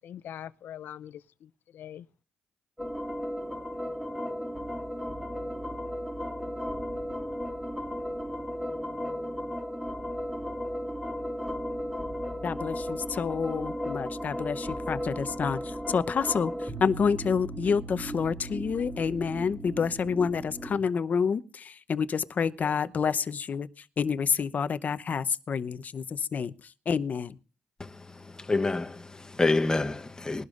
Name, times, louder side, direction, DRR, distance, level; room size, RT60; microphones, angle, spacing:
voice 1, 0.0-2.1, left 10 dB, 75° left, 0.5 m, -43 dB
sound 1, 2.8-20.8, equal, 5° right, 2.1 m, -35 dB
voice 2, 12.4-27.4, left 6 dB, 50° left, 0.8 m, -29 dB
voice 3, 28.3-30.4, left 3 dB, 20° left, 1.0 m, -27 dB
20.5 x 12.0 x 2.5 m
cardioid pair, 75°, 3 cm